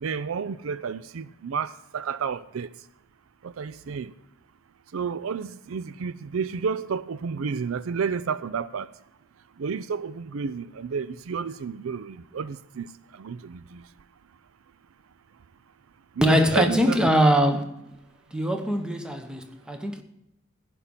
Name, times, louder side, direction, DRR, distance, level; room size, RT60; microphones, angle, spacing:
voice 1, 0.0-2.7 3.4-4.1 4.9-8.9 9.6-13.9 16.2-17.1, right 5 dB, 75° right, 0.5 m, -31 dB
voice 2, 16.2-17.7 18.3-20.0, equal, 5° right, 1.1 m, -22 dB
15.5 x 5.4 x 8.7 m
head